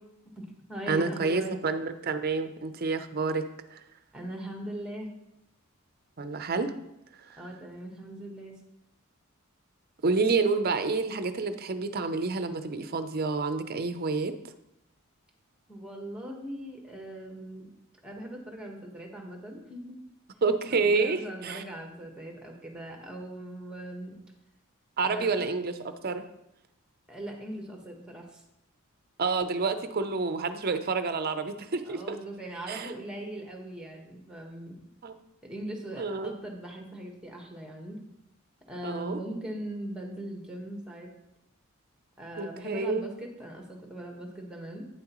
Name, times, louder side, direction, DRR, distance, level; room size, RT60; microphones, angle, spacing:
voice 1, 0.4-1.5 4.1-5.1 7.4-8.6 15.7-17.7 18.0-20.0 20.7-24.2 25.0-25.6 27.1-28.4 31.8-34.8 35.4-38.0 38.7-41.1 42.2-44.9, right 1 dB, 5° right, 1 dB, 1.4 m, -40 dB
voice 2, 0.9-3.8 6.2-6.8 7.2-7.4 10.0-14.4 20.4-21.6 25.0-26.2 29.2-32.2 32.7-32.9 35.0-35.1 36.0-36.3 38.8-39.2 42.4-43.1, right 4 dB, 45° right, 9 dB, 0.6 m, -29 dB
9.3 x 7.5 x 3.1 m, 0.86 s
head